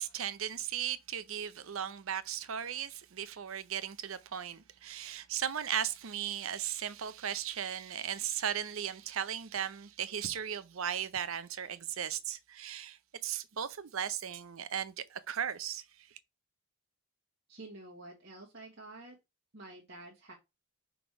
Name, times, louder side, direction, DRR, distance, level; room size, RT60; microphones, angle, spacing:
voice 1, 0.0-15.8, right 9 dB, 75° right, 0.6 m, -37 dB
voice 2, 17.5-19.2 19.5-20.3, right 2 dB, 55° right, 1.4 m, -49 dB
6.0 x 3.5 x 4.7 m
head